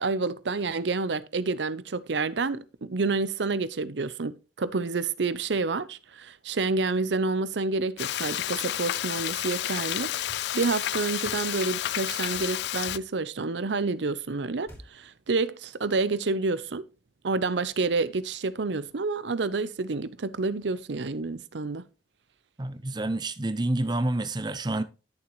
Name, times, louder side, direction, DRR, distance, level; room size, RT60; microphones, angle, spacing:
voice 1, 0.0-10.1 10.5-16.8 17.2-21.8, right 3 dB, 80° right, 0.7 m, -29 dB
Frying (food), 8.0-13.0, left 12 dB, 70° left, 0.3 m, -31 dB
sound 1, 10.3-10.4 11.2-11.5 12.3-12.5 12.9-13.1 14.6-14.9, equal, 15° left, 2.8 m, -47 dB
voice 2, 22.6-24.8, right 1 dB, 25° right, 0.7 m, -28 dB
11.5 x 7.0 x 3.1 m
head